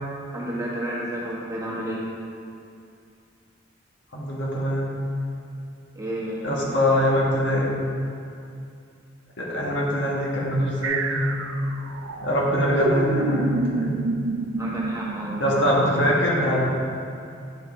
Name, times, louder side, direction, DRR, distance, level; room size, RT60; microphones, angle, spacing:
voice 1, 0.3-2.1 5.9-7.0 14.6-15.5, right 1 dB, 15° right, -6 dB, 1.4 m, -31 dB
voice 2, 4.1-4.9 6.4-7.7 9.4-11.4 12.2-13.9 15.4-16.7, left 1 dB, 60° left, -4 dB, 1.5 m, -23 dB
sound 1, 10.8-16.5, right 3 dB, 90° right, 0.5 m, -29 dB
9.4 x 5.5 x 4.0 m, 2.5 s
head